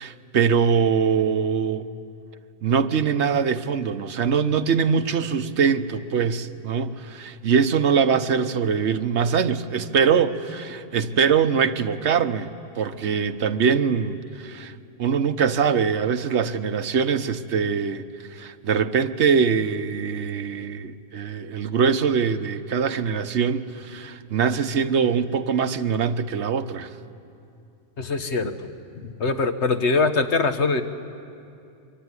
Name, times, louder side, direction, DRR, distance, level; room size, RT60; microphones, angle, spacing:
voice 1, 0.0-1.9 2.6-12.5 12.8-14.7 15.0-18.0 18.3-26.9, right 6 dB, 85° right, 1.2 m, -23 dB
voice 2, 28.0-28.7 29.0-30.8, left 3 dB, 75° left, 1.5 m, -23 dB
24.0 x 23.5 x 9.8 m
omnidirectional pair, 1.1 m